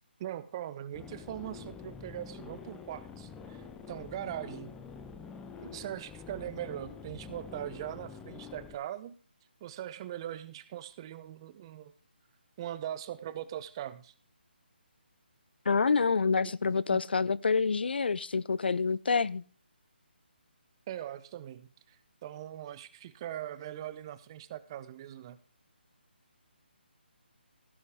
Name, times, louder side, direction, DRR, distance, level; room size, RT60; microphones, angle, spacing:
voice 1, 0.2-4.8 5.6-9.1 9.6-11.9 12.6-14.1 16.4-16.5 16.9-17.0 20.9-25.4, right 12 dB, 25° right, 0.7 m, -41 dB
sound 1, 0.9-8.7, left 6 dB, 10° left, 1.0 m, -47 dB
voice 2, 15.7-19.4, left 4 dB, 65° left, 0.6 m, -27 dB
16.0 x 9.7 x 3.7 m
figure-of-eight pair, 155°, 6 cm